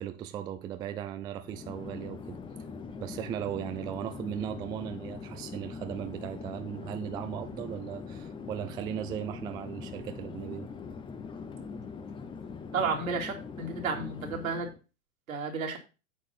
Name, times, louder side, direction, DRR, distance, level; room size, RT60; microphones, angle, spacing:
voice 1, 0.0-2.4 3.0-10.7, right 10 dB, 10° right, 0.3 m, -37 dB
Chatter / Fixed-wing aircraft airplane, 1.4-14.8, left 5 dB, 10° left, 0.7 m, -42 dB
voice 2, 12.7-14.7 15.3-15.8, right 4 dB, 80° right, 3.0 m, -32 dB
8.4 x 5.0 x 5.7 m
hypercardioid pair, 115°, 41 cm